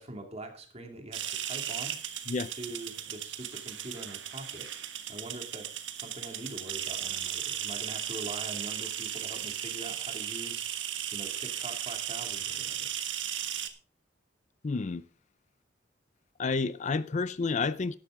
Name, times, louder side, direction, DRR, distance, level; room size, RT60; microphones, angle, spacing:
voice 1, 0.0-2.0 2.5-4.7 5.1-10.7 11.1-12.9, right 2 dB, 35° right, 2.4 m, -43 dB
sound 1, 1.1-13.7, right 10 dB, 80° right, 1.4 m, -36 dB
voice 2, 14.6-15.0 16.4-18.0, left 4 dB, 40° left, 0.4 m, -30 dB
13.0 x 11.5 x 3.7 m
head